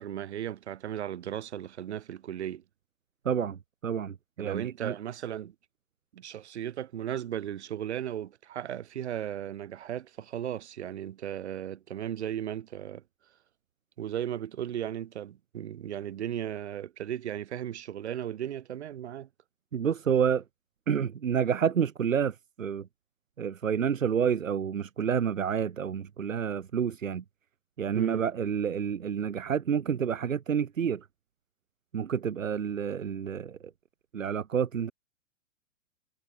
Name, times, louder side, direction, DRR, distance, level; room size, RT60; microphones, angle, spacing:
voice 1, 0.0-2.6 4.4-5.6 6.1-13.0 14.0-19.3 27.9-28.2, right 10 dB, 60° right, 1.9 m, -36 dB
voice 2, 3.2-4.9 19.7-20.4 20.9-22.9 23.4-27.2 27.8-31.1 31.9-33.6 34.1-34.9, right 7 dB, 85° right, 0.7 m, -29 dB
figure-of-eight pair, 110°, 38 cm